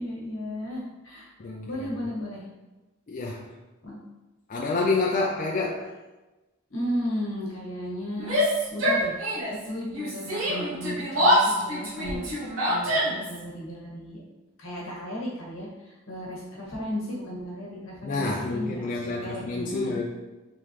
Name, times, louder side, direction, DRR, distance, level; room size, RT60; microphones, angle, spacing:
voice 1, 0.0-1.3 1.7-2.4 3.8-4.0 6.7-8.4 8.7-9.1 9.6-14.2 14.6-19.9, equal, 75° left, -4 dB, 1.3 m, -34 dB
voice 2, 3.1-3.4 4.5-5.9 18.0-20.0, left 3 dB, 40° left, -3 dB, 0.4 m, -28 dB
Yell, 8.2-9.6 9.9-13.4, equal, 85° right, 1.3 m, -25 dB
3.5 x 3.1 x 3.2 m, 1.1 s
head